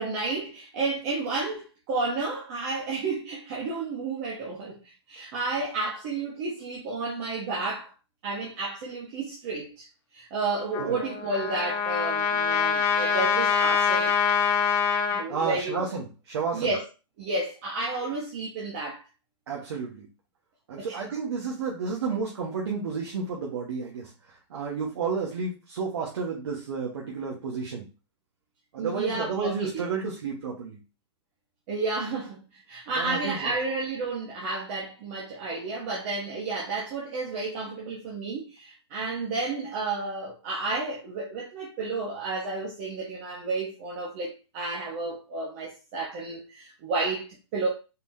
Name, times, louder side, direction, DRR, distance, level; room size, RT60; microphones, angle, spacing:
voice 1, 0.0-7.9 8.2-9.9 10.1-14.2 15.1-15.9 16.5-16.8 17.2-19.0 20.8-21.0 28.8-29.8 31.7-47.7, right 3 dB, 30° right, 1.1 m, -31 dB
Trumpet, 10.7-15.2, left 6 dB, 15° left, 0.5 m, -25 dB
voice 2, 15.3-16.7 19.5-20.1 20.7-27.9 28.7-30.8 32.9-33.5, right 5 dB, 65° right, 1.4 m, -31 dB
4.3 x 3.8 x 2.7 m
hypercardioid pair, 170°, 15 cm